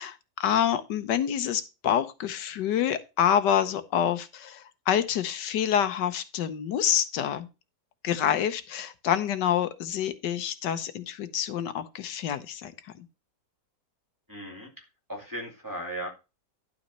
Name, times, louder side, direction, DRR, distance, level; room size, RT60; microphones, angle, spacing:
voice 1, 0.0-7.5 8.0-13.0, left 9 dB, 80° left, 1.5 m, -27 dB
voice 2, 14.3-14.7 15.1-16.1, right 1 dB, 10° right, 2.5 m, -36 dB
12.0 x 4.1 x 5.4 m
omnidirectional pair, 1.9 m